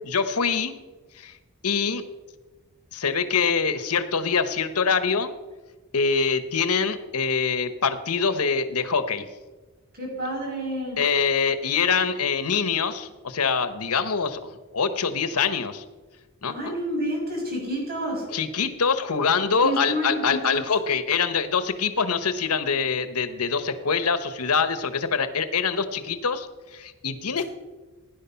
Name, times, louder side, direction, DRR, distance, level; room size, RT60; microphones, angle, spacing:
voice 1, 0.0-0.7 1.2-1.3 1.6-2.0 2.9-5.3 5.9-9.3 11.0-15.8 16.4-16.8 18.3-27.4, left 5 dB, 85° left, 11 dB, 1.1 m, -24 dB
voice 2, 10.0-11.0 16.5-18.3 19.6-20.6, right 1 dB, 45° right, -1 dB, 6.2 m, -29 dB
16.5 x 10.5 x 5.8 m, 1.3 s
head